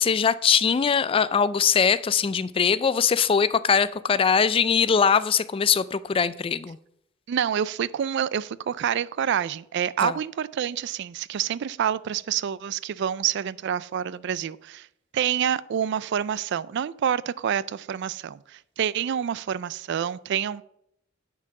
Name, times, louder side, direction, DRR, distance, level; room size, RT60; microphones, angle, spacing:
voice 1, 0.0-6.8 10.0-10.2, left 6 dB, 25° left, 0.3 m, -21 dB
voice 2, 7.3-14.9 15.1-20.6, right 9 dB, 60° right, 0.3 m, -27 dB
9.6 x 4.7 x 5.8 m
head